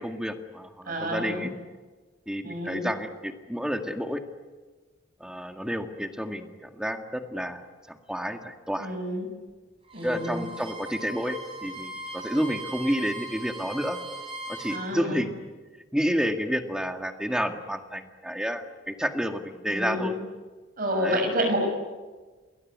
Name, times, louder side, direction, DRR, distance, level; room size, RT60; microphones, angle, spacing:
voice 1, 0.0-1.5 2.3-4.2 5.2-8.9 10.0-14.0 14.5-15.3 15.9-20.2 20.9-21.2, equal, 5° right, 5 dB, 1.9 m, -30 dB
voice 2, 0.9-1.5 2.4-2.9 8.8-9.3 9.9-10.4 14.7-15.2 19.7-20.2 20.8-21.7, equal, 50° right, 4 dB, 6.3 m, -29 dB
Bowed string instrument, 9.8-14.9, right 2 dB, 30° right, 7.0 m, -39 dB
29.5 x 21.0 x 9.6 m, 1.3 s
head